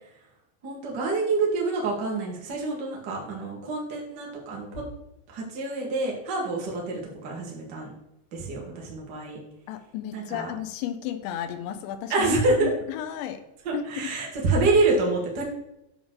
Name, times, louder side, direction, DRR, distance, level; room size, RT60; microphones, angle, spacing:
voice 1, 0.6-4.8 5.3-7.9 8.3-9.4 10.1-10.5 12.1-12.7 13.6-15.4, right 3 dB, 70° right, -2 dB, 1.0 m, -27 dB
voice 2, 9.7-13.4 13.7-14.1, left 10 dB, 85° left, 9 dB, 3.1 m, -33 dB
10.5 x 4.0 x 6.4 m, 0.88 s
omnidirectional pair, 5.2 m